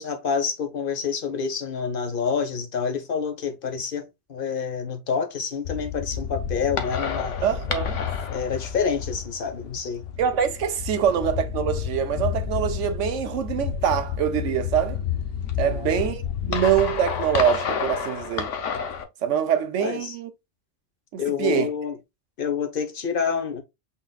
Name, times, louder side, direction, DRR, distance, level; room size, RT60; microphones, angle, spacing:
voice 1, 0.0-4.0 4.3-7.4 8.3-10.0 10.9-11.0 15.6-16.1 19.8-20.1 21.2-22.0 22.4-23.6, left 6 dB, 50° left, 1.1 m, -28 dB
sound 1, 5.6-19.0, left 7 dB, 85° left, 1.1 m, -30 dB
voice 2, 7.4-8.0 10.2-15.0 15.6-18.5 19.2-20.3 21.1-21.7, right 9 dB, 90° right, 1.1 m, -24 dB
5.7 x 3.9 x 2.3 m
omnidirectional pair, 1.2 m